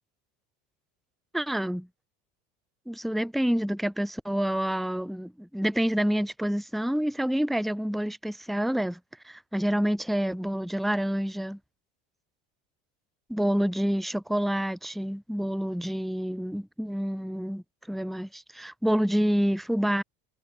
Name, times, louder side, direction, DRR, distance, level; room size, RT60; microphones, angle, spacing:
voice 1, 1.3-1.9 2.9-9.0 9.2-11.6 13.3-20.0, equal, ahead, 0.6 m, -28 dB
supercardioid pair, 100°, 32 cm